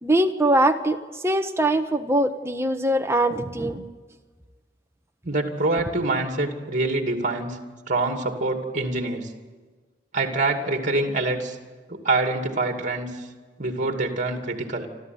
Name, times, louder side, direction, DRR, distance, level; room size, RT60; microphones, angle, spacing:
voice 1, 0.0-3.8, right 1 dB, 15° right, 6 dB, 1.2 m, -22 dB
voice 2, 5.2-7.6 7.9-9.3 10.1-11.6 11.9-13.3 13.6-14.9, right 2 dB, 45° right, 5 dB, 2.5 m, -25 dB
28.0 x 13.0 x 9.4 m, 1.4 s
head